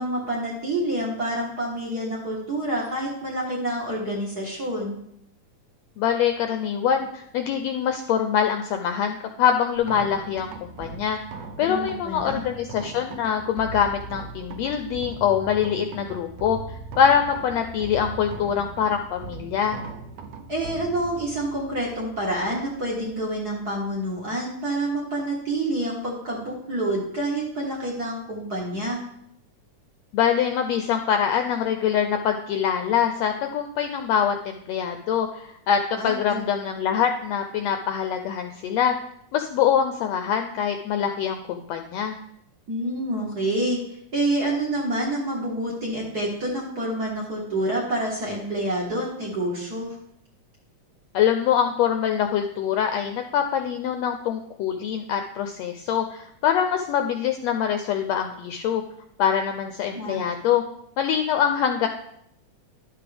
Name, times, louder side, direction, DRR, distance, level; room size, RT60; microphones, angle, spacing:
voice 1, 0.0-4.9 11.6-12.4 20.5-29.0 36.0-36.4 42.7-43.8 44.1-49.9 59.9-60.2, right 1 dB, 40° right, -3 dB, 1.5 m, -28 dB
voice 2, 6.0-11.2 11.6-19.8 30.1-38.9 39.3-42.2 51.1-58.8 59.2-60.6 61.0-61.9, left 8 dB, 80° left, 6 dB, 1.5 m, -24 dB
sound 1, 9.8-24.0, right 4 dB, 75° right, 1.7 m, -40 dB
11.5 x 7.1 x 3.4 m, 0.74 s
omnidirectional pair, 3.5 m